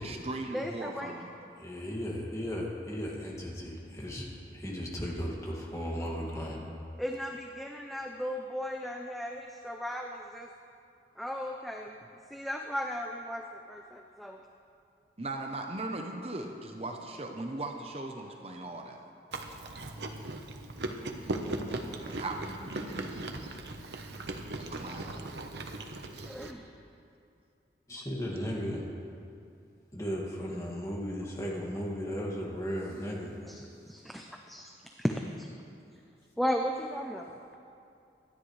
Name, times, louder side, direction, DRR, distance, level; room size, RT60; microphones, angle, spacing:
voice 1, 0.0-1.3 5.2-5.3 15.2-19.0 22.0-23.3 24.6-25.2, right 2 dB, 35° right, 3 dB, 0.8 m, -39 dB
voice 2, 0.5-1.1 7.0-10.5 11.2-12.0 12.3-14.4 26.3-26.6 33.5-34.7 35.0-35.5 36.4-37.3, equal, ahead, 2 dB, 0.5 m, -35 dB
voice 3, 1.6-6.6 27.9-28.9 29.9-33.4, equal, 20° left, -3 dB, 2.1 m, -36 dB
Chewing mastication, 19.3-26.5, right 2 dB, 80° right, 1.0 m, -38 dB
25.5 x 10.5 x 3.3 m, 2.5 s
head